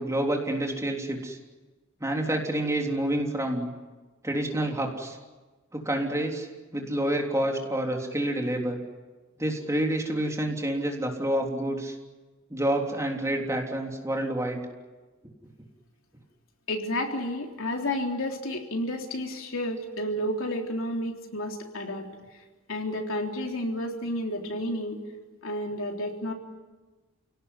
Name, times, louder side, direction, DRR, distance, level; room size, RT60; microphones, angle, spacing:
voice 1, 0.0-1.4 2.0-3.7 4.2-5.2 5.7-6.5 6.7-8.8 9.4-12.0 12.5-14.6, right 1 dB, 15° right, 1 dB, 3.5 m, -28 dB
voice 2, 16.7-22.1 22.7-25.0 25.4-26.3, left 1 dB, 70° left, 2 dB, 3.7 m, -31 dB
29.5 x 18.0 x 9.9 m, 1.3 s
head